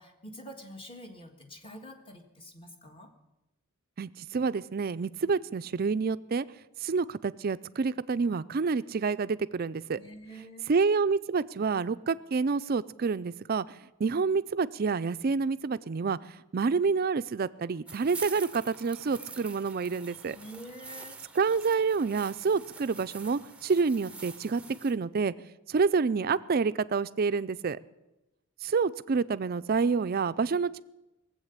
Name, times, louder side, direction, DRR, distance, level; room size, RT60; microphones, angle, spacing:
voice 1, 0.0-3.1 9.9-10.6 20.3-21.2, equal, 25° left, 4 dB, 1.5 m, -46 dB
voice 2, 4.0-6.4 6.8-10.0 10.7-13.7 14.0-16.2 16.5-20.4 21.4-25.3 25.7-27.8 28.6-30.8, right 5 dB, 45° right, 15 dB, 0.4 m, -28 dB
sound 1, 17.9-24.9, right 4 dB, 5° right, 0.7 m, -46 dB
18.0 x 7.9 x 8.2 m, 0.97 s
head